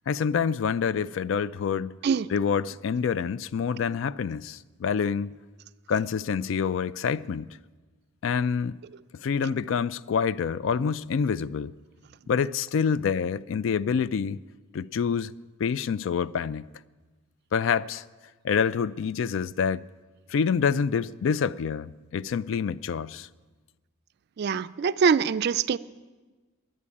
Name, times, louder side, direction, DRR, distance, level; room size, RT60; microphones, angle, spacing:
voice 1, 0.1-2.0 2.3-5.3 5.9-7.6 8.2-8.7 9.2-11.7 12.3-14.4 14.7-15.3 15.6-16.7 17.5-18.0 18.4-19.8 20.3-23.3, left 6 dB, 70° left, 0.3 m, -27 dB
voice 2, 24.4-25.8, right 6 dB, 55° right, 0.3 m, -23 dB
11.0 x 9.5 x 8.4 m
head